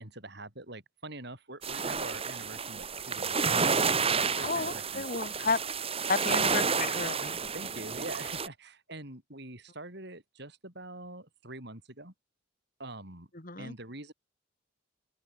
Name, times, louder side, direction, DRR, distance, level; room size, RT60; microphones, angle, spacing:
voice 1, 0.0-5.2 7.5-12.1 12.8-13.3 13.6-14.1, right 2 dB, 55° right, 6.6 m, -44 dB
sound 1, 1.6-8.5, right 5 dB, 30° right, 2.7 m, -30 dB
voice 2, 4.4-5.6 6.1-7.4 13.3-13.7, left 4 dB, 45° left, 2.8 m, -32 dB
open air
head